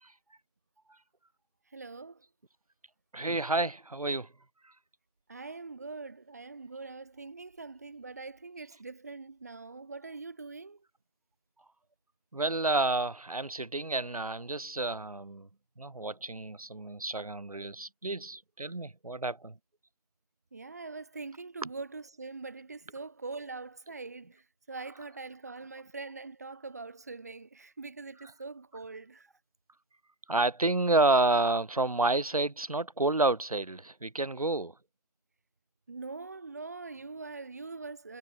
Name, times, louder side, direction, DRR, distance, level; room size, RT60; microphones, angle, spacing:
voice 1, 1.7-2.2 5.3-10.8 20.5-29.3 35.9-38.2, right 3 dB, 25° right, 4.5 m, -43 dB
voice 2, 3.1-4.3 4.6-4.7 12.3-15.5 15.8-19.6 30.3-34.7, right 2 dB, 60° right, 2.1 m, -29 dB
figure-of-eight pair, 175°, 21 cm